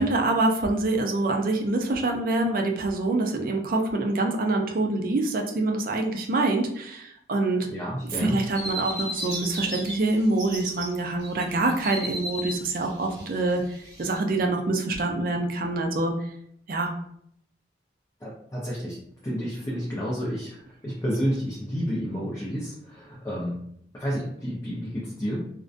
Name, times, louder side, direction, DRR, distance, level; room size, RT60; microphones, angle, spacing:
voice 1, 0.0-7.7 8.2-13.6 14.0-16.1 16.7-16.9, right 2 dB, 50° right, 3 dB, 0.4 m, -25 dB
voice 2, 7.7-8.4 18.2-19.0 19.2-23.6 23.9-25.5, equal, 15° left, -7 dB, 0.4 m, -30 dB
sound 1, 8.0-9.9 10.2-10.9 11.2-14.1, equal, 20° right, 0.9 m, -35 dB
2.5 x 2.1 x 2.4 m, 0.70 s
head